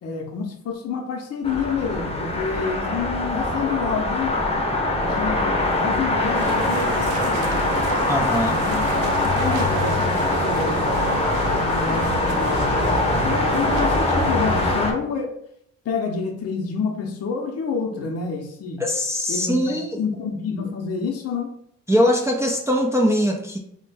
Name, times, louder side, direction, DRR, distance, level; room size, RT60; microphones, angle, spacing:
voice 1, 0.0-4.4 5.0-7.7 8.4-8.9 9.2-11.1 11.4-15.3 15.8-18.8 19.3-21.5, left 5 dB, 55° left, 1 dB, 0.6 m, -28 dB
sound 1, 1.4-14.9, left 2 dB, 20° left, 0.7 m, -23 dB
sound 2, 6.3-14.9, right 5 dB, 85° right, 0.5 m, -31 dB
voice 2, 8.1-8.6 18.8-20.0 21.9-23.6, equal, 10° right, 1 dB, 0.3 m, -21 dB
3.2 x 2.1 x 3.3 m, 0.69 s
cardioid pair, 90°, 30 cm